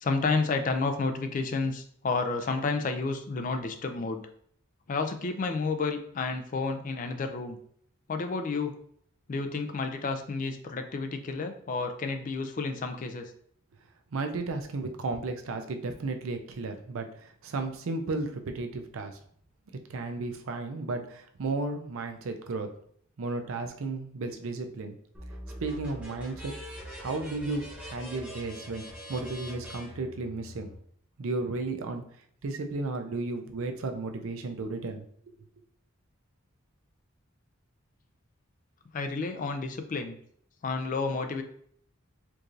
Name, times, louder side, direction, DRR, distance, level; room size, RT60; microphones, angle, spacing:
voice 1, 0.0-4.2 4.9-7.6 8.1-8.7 9.3-13.3 38.9-40.2 40.6-41.4, left 4 dB, 40° left, 6 dB, 0.3 m, -30 dB
voice 2, 14.1-19.2 19.9-22.7 23.2-24.9 25.6-26.5 27.0-28.8 29.1-30.7 31.2-32.0 32.4-35.3, right 3 dB, 75° right, 5 dB, 0.5 m, -34 dB
sound 1, 25.1-30.8, equal, 5° right, 0.9 m, -43 dB
4.5 x 2.5 x 2.5 m, 0.62 s
head